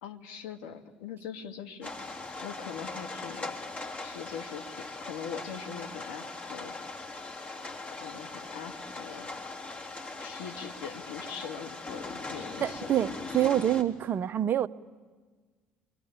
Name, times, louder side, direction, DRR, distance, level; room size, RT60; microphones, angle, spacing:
voice 1, 0.0-1.9 2.4-3.5 4.0-6.7 7.9-9.3 10.2-12.9, left 7 dB, 70° left, 4 dB, 1.8 m, -42 dB
sound 1, 1.8-13.8, left 3 dB, 30° left, 3.8 m, -40 dB
voice 2, 12.6-14.7, right 11 dB, 45° right, 14 dB, 0.8 m, -26 dB
28.0 x 22.5 x 8.8 m, 1.4 s
hypercardioid pair, 60°, 5 cm